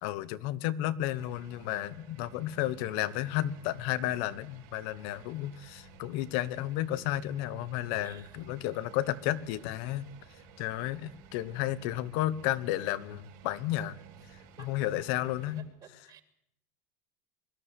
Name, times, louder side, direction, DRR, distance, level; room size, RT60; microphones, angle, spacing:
voice 1, 0.0-10.1 10.6-14.0 14.6-15.6, left 14 dB, 70° left, 17 dB, 1.2 m, -32 dB
sound 1, 1.1-15.6, right 7 dB, 75° right, 4.9 m, -54 dB
voice 2, 8.0-8.4 14.6-14.9 15.8-16.2, right 9 dB, 40° right, 7 dB, 2.9 m, -53 dB
22.0 x 12.5 x 10.0 m, 0.76 s
supercardioid pair, 135°, 10 cm